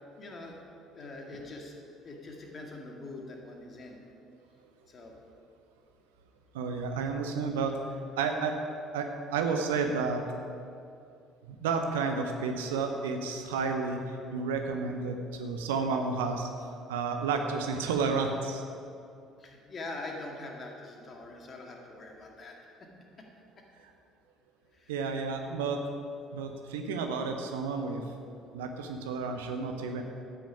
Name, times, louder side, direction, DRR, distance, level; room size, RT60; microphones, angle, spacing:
voice 1, 0.2-0.5 0.9-1.7 2.0-4.0 4.9-5.2 19.4-22.9 23.2-23.3 24.7-24.9, left 2 dB, 35° left, 1 dB, 2.1 m, -43 dB
voice 2, 6.5-7.8 8.2-8.6 8.9-10.2 11.5-16.5 16.9-18.6 24.9-25.8 26.3-28.0 28.5-30.0, right 4 dB, 70° right, 4 dB, 0.9 m, -31 dB
12.5 x 9.4 x 4.9 m, 2.5 s
figure-of-eight pair, 55°, 0 cm